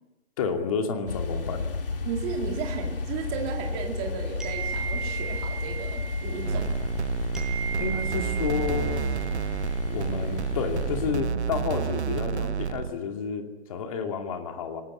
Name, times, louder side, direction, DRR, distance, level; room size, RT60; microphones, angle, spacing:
voice 1, 0.4-1.7 7.8-9.1 9.9-14.8, left 5 dB, 30° left, 5 dB, 2.5 m, -30 dB
sound 1, 1.1-11.1, left 4 dB, 55° left, 2.6 m, -33 dB
voice 2, 2.0-6.8, right 6 dB, 15° right, 2 dB, 2.1 m, -34 dB
sound 2, 4.4-7.0 7.3-9.9, right 7 dB, ahead, 5.5 m, -37 dB
sound 3, 6.4-12.9, right 7 dB, 75° right, 0.9 m, -30 dB
24.5 x 19.0 x 8.6 m, 1.1 s
hypercardioid pair, 155°, 33 cm